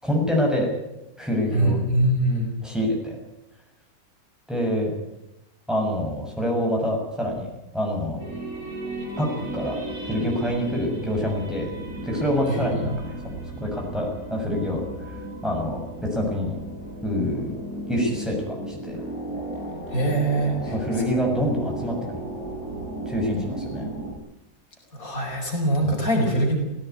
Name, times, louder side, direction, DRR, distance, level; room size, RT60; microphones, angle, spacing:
voice 1, 0.0-0.7 1.2-1.8 2.6-3.2 4.5-4.9 5.7-8.3 9.2-9.8 10.0-11.7 12.0-13.2 13.6-15.8 16.1-16.6 17.0-17.6 17.9-19.0 20.7-22.2 23.1-23.8 25.8-25.9, equal, ahead, -1 dB, 6.8 m, -26 dB
voice 2, 1.5-2.5 12.5-12.9 19.9-21.0 24.9-26.6, right 1 dB, 60° left, 1 dB, 5.7 m, -23 dB
sound 1, 8.2-24.1, right 1 dB, 60° right, 6.2 m, -34 dB
17.5 x 17.5 x 9.5 m, 0.92 s
omnidirectional pair, 1.7 m